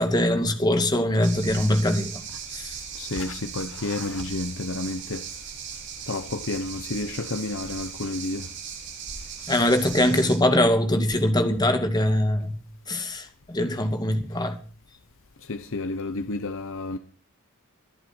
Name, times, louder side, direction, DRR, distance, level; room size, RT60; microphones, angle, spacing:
voice 1, 0.0-2.2 2.5-2.7 9.5-12.6 12.9-14.6, left 1 dB, 20° left, 2.2 m, -22 dB
sound 1, 1.2-10.4, right 7 dB, 55° right, 5.2 m, -38 dB
voice 2, 2.9-5.2 6.1-8.5 15.4-17.0, left 2 dB, 60° left, 1.0 m, -30 dB
22.0 x 11.0 x 4.5 m
head